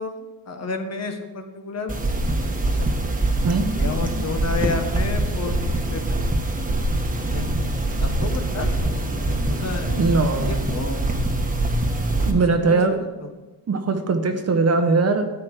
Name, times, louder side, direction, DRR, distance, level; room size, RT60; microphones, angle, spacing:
voice 1, 0.0-1.9 2.6-2.9 3.7-5.6 5.9-6.3 7.3-7.5 8.0-11.1 12.3-13.3, left 4 dB, 40° left, 5 dB, 1.5 m, -31 dB
sound 1, 1.9-12.3, right 1 dB, 20° right, 1.4 m, -24 dB
voice 2, 3.4-3.7 9.9-10.5 12.2-13.0 13.7-15.3, right 3 dB, 35° right, 7 dB, 1.1 m, -20 dB
13.5 x 9.5 x 5.0 m, 1.2 s
cardioid pair, 140°, 42 cm